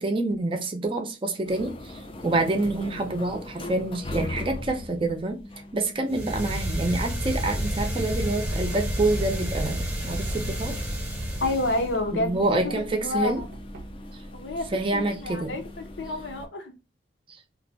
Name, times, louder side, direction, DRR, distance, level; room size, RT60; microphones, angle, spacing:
voice 1, 0.0-5.4 5.7-10.7 12.1-13.4 14.7-15.6, right 2 dB, 30° right, 0.5 m, -27 dB
sound 1, 1.4-16.5, left 1 dB, 30° left, 0.4 m, -40 dB
sound 2, 6.1-12.0, equal, 10° right, 0.8 m, -30 dB
Knock, 8.4-9.2 10.3-11.1 13.4-14.1, right 2 dB, 75° right, 0.6 m, -45 dB
voice 2, 11.4-12.4 12.6-13.5 14.3-14.7 14.9-15.6 16.0-16.7, left 2 dB, 75° left, 0.6 m, -29 dB
2.6 x 2.1 x 3.9 m
head